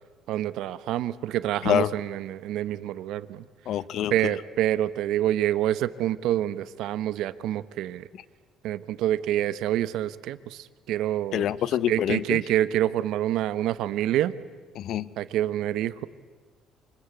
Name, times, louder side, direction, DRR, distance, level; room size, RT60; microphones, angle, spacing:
voice 1, 0.3-3.4 4.1-8.1 8.6-11.5 11.9-14.3 15.2-16.1, right 12 dB, 75° right, 16 dB, 0.8 m, -27 dB
voice 2, 3.7-4.3 11.3-12.4 14.8-15.1, left 11 dB, 60° left, 18 dB, 0.7 m, -26 dB
25.0 x 20.0 x 8.2 m, 1.5 s
cardioid pair, 155°, 0 cm